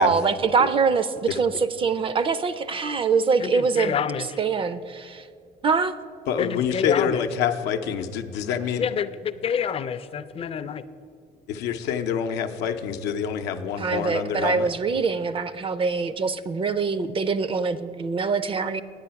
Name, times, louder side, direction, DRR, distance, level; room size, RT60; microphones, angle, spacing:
voice 1, 0.0-4.0 4.4-5.2 5.6-5.9 13.8-18.8, right 5 dB, 30° right, 14 dB, 0.4 m, -24 dB
voice 2, 3.4-4.4 6.4-7.2 8.8-10.8, left 7 dB, 35° left, 13 dB, 0.4 m, -28 dB
voice 3, 6.3-8.8 11.5-14.7, left 8 dB, 85° left, 6 dB, 0.6 m, -26 dB
9.6 x 7.7 x 5.7 m, 2.2 s
cardioid pair, 110°, 17 cm